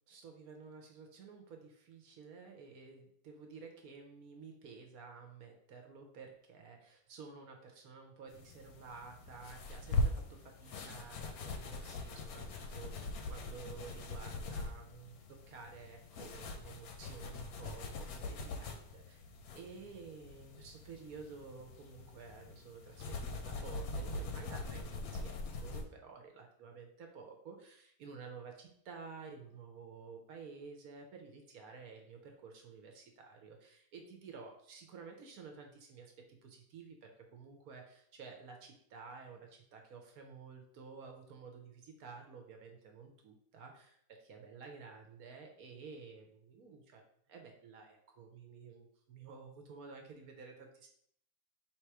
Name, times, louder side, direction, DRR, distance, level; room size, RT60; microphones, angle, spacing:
voice 1, 0.1-19.3 19.5-50.9, right 5 dB, 65° right, 3 dB, 1.1 m, -52 dB
sound 1, 8.3-25.8, left 2 dB, 65° left, 1.0 m, -42 dB
3.7 x 3.0 x 4.6 m, 0.67 s
omnidirectional pair, 1.8 m